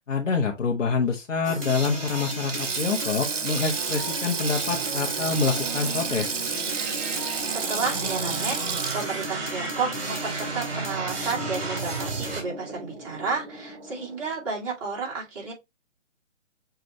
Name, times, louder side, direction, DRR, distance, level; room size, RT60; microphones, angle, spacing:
voice 1, 0.1-6.4, left 5 dB, 80° left, 1.0 m, -26 dB
sound 1, 1.4-12.4, right 2 dB, 50° right, 2.4 m, -33 dB
sound 2, 2.3-14.7, right 2 dB, 10° right, 1.1 m, -41 dB
Sink (filling or washing), 2.3-10.8 11.1-11.3 12.5-12.7, right 6 dB, 75° right, 0.9 m, -32 dB
voice 2, 7.5-8.6 8.9-15.5, right 4 dB, 25° right, 2.1 m, -31 dB
6.8 x 2.5 x 3.0 m
hypercardioid pair, 150°, 37 cm